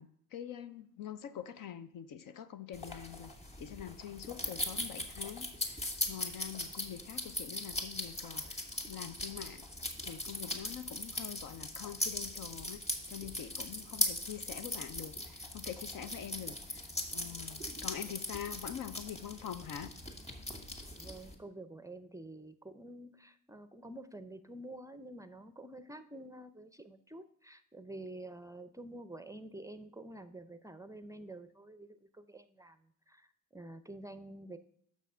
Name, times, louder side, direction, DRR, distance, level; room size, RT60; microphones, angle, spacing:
voice 1, 0.0-8.6 8.9-9.7 10.0-12.8 13.1-16.8 17.1-19.9, left 9 dB, 65° left, 12 dB, 0.7 m, -45 dB
sound 1, 2.7-21.3, left 1 dB, 15° left, 2.1 m, -40 dB
voice 2, 21.0-34.6, right 1 dB, 10° right, 11 dB, 0.5 m, -49 dB
6.2 x 6.2 x 5.5 m, 0.68 s
supercardioid pair, 70°, 36 cm